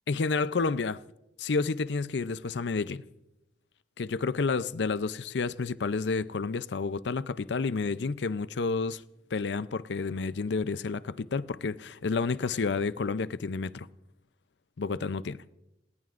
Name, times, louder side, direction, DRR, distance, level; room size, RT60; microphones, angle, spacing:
voice 1, 0.1-1.0 1.4-3.1 4.0-9.0 9.3-13.9 14.8-15.4, left 4 dB, 85° left, 0.5 m, -30 dB
28.0 x 19.0 x 2.5 m
head